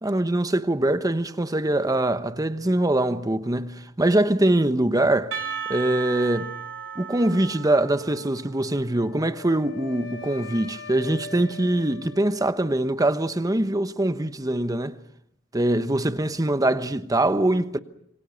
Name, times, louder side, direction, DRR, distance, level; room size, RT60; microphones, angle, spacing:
voice 1, 0.0-5.3 5.7-6.5 7.0-15.0 15.5-17.8, right 1 dB, 20° right, 1.0 m, -23 dB
Percussion, 5.3-9.2, right 7 dB, 75° right, 3.4 m, -35 dB
Wind instrument woodwind instrument, 8.9-13.0, left 3 dB, 85° left, 5.1 m, -42 dB
26.5 x 24.0 x 7.1 m
head